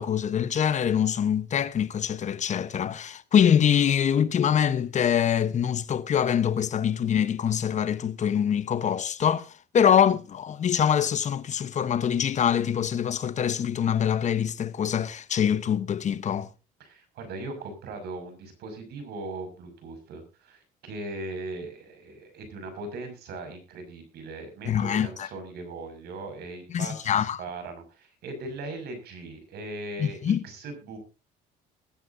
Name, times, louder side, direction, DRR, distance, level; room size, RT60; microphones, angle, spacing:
voice 1, 0.0-16.5 24.7-25.3 26.7-27.4 30.0-30.4, left 8 dB, 45° left, 1.0 m, -24 dB
voice 2, 16.8-31.0, right 2 dB, 70° right, 6.2 m, -39 dB
21.0 x 11.0 x 2.7 m
cardioid pair, 110°, 17 cm